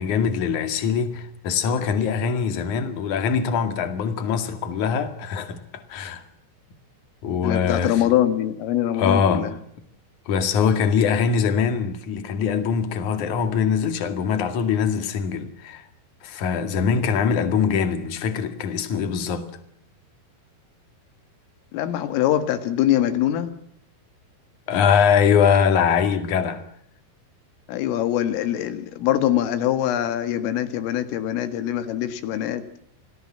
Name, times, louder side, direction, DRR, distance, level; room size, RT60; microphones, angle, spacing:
voice 1, 0.0-6.2 7.2-8.1 8.9-9.5 10.3-15.8 16.2-19.5 24.7-26.6, left 6 dB, 50° left, 2.9 m, -22 dB
voice 2, 7.4-9.5 21.7-23.5 27.7-32.6, left 11 dB, 80° left, 4.4 m, -23 dB
28.0 x 19.5 x 7.5 m
omnidirectional pair, 5.7 m